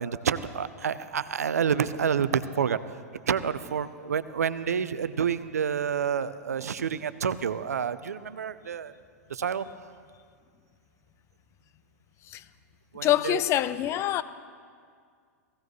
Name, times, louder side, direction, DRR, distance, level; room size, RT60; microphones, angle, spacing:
voice 1, 0.0-2.8 3.3-8.9 9.3-9.7 12.9-13.4, right 7 dB, 80° right, 14 dB, 0.5 m, -28 dB
voice 2, 13.0-14.2, left 13 dB, 35° left, 15 dB, 0.5 m, -25 dB
17.5 x 16.0 x 3.1 m, 2.1 s
hypercardioid pair, 100°, 8 cm